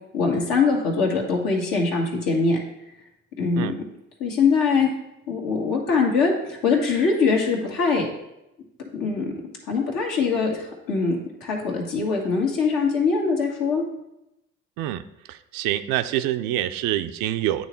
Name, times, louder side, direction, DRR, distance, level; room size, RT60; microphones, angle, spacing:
voice 1, 0.1-2.6 3.4-3.7 4.2-4.9 5.3-8.1 8.9-9.3 9.7-13.8, left 4 dB, 70° left, 0 dB, 1.6 m, -22 dB
voice 2, 15.3-17.7, right 13 dB, 75° right, 11 dB, 0.5 m, -26 dB
8.7 x 3.2 x 4.3 m, 0.87 s
hypercardioid pair, 60°, 34 cm